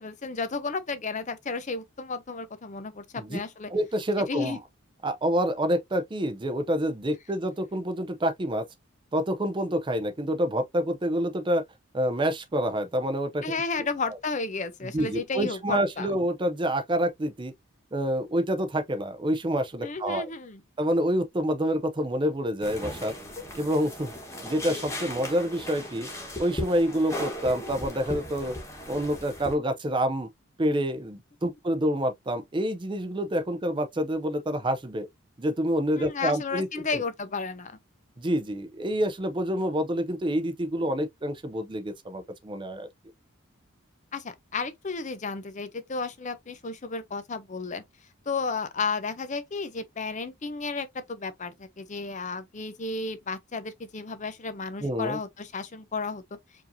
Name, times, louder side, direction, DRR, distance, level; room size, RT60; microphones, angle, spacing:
voice 1, 0.0-3.7 4.3-4.6 13.4-16.1 19.8-20.6 23.4-23.5 36.0-37.8 44.1-47.8 48.3-56.2, left 4 dB, 35° left, 0.6 m, -33 dB
voice 2, 3.7-4.6 5.0-8.6 9.1-11.6 11.9-13.4 14.8-17.5 17.9-20.3 20.8-23.1 23.6-24.1 24.4-26.1 26.4-28.6 28.9-30.3 30.6-35.1 35.4-37.0 38.2-42.9 54.8-55.2, equal, 20° right, 0.5 m, -27 dB
sound 1, 22.6-29.5, equal, 15° left, 1.1 m, -37 dB
4.9 x 2.7 x 2.6 m
head